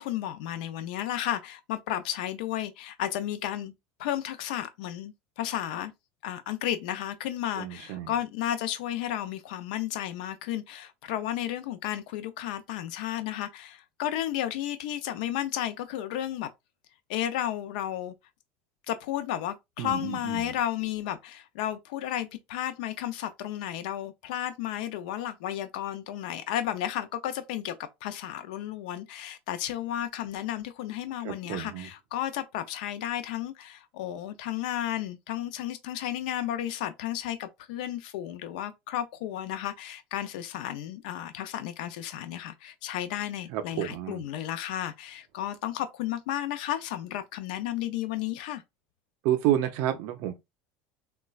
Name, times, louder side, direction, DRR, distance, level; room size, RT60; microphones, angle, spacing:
voice 1, 0.0-3.7 4.0-5.9 6.2-16.5 17.1-18.1 18.9-27.7 28.0-48.6, left 12 dB, 80° left, 0.4 m, -33 dB
voice 2, 7.6-8.1 19.8-20.5 31.2-31.9 43.5-44.2 49.2-50.4, right 12 dB, 55° right, 0.4 m, -30 dB
4.0 x 2.2 x 2.3 m
cardioid pair, 160°, 5 cm